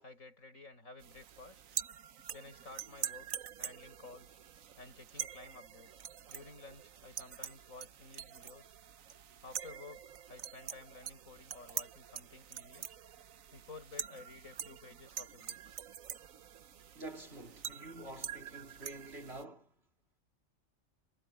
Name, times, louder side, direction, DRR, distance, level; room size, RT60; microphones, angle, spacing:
voice 1, 0.0-1.6 2.3-3.3 3.6-4.4 4.8-6.0 6.3-8.7 9.4-12.9 13.5-15.7, left 3 dB, 90° left, 7.4 m, -53 dB
sound 1, 1.0-19.4, right 9 dB, 90° right, 1.4 m, -45 dB
voice 2, 16.9-19.7, right 2 dB, 50° right, 3.3 m, -48 dB
omnidirectional pair, 1.3 m